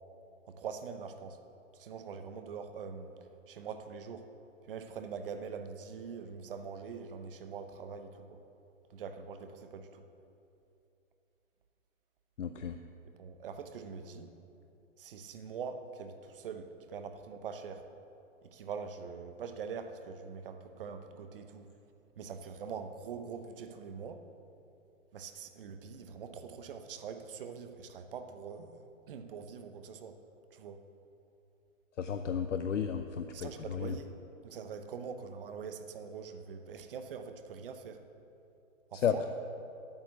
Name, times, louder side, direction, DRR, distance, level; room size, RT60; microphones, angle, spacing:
voice 1, 0.5-1.4 1.7-3.1 3.5-4.3 4.6-8.4 8.9-10.0 13.1-14.3 15.0-17.8 18.4-21.7 22.2-24.2 25.1-30.2 30.5-30.8 33.3-34.2 34.4-38.0 38.9-39.2, right 6 dB, 40° right, 8 dB, 0.9 m, -43 dB
voice 2, 12.4-12.8 32.0-34.0 38.9-39.2, left 7 dB, 65° left, 7 dB, 0.7 m, -33 dB
8.9 x 8.9 x 6.9 m, 2.7 s
hypercardioid pair, 150°, 40 cm